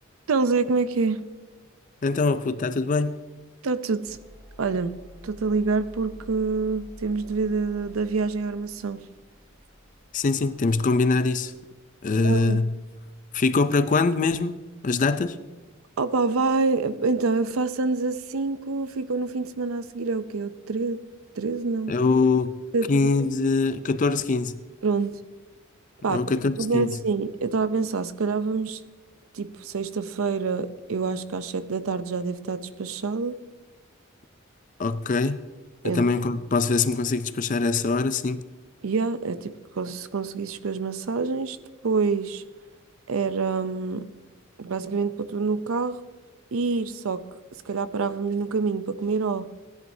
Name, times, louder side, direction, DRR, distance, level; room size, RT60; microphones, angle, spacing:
voice 1, 0.3-1.2 3.6-4.2 4.6-9.0 12.2-12.6 16.0-21.0 21.4-21.9 22.7-23.1 24.8-25.2 26.0-26.2 26.6-28.8 29.3-33.3 35.8-36.0 38.8-41.6 41.8-42.4 43.1-44.1 44.6-46.0 46.5-47.3 47.5-49.5, right 4 dB, 80° right, 0.6 m, -26 dB
voice 2, 2.0-3.2 10.1-11.5 12.0-12.8 13.3-15.4 21.9-22.6 22.9-24.6 26.1-27.0 34.8-35.4 35.8-38.4, left 3 dB, 40° left, 0.4 m, -23 dB
sound 1, 4.1-12.2, equal, 20° right, 1.6 m, -49 dB
16.5 x 10.5 x 2.7 m
head